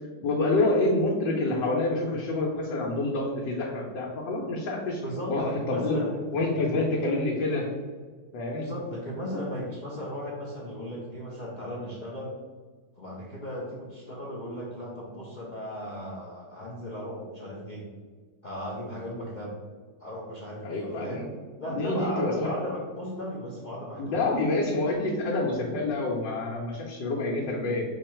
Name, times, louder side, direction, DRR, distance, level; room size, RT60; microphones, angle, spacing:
voice 1, 0.2-5.0 5.3-6.0 6.3-7.6 8.3-8.7 20.6-21.3 21.6-22.7 24.0-27.8, left 2 dB, 90° left, -3 dB, 1.4 m, -27 dB
voice 2, 5.0-6.8 8.6-12.3 13.0-17.8 18.4-19.6 20.0-21.3 21.6-24.2, equal, 65° left, -5 dB, 0.4 m, -36 dB
5.2 x 2.4 x 4.3 m, 1.5 s
omnidirectional pair, 1.9 m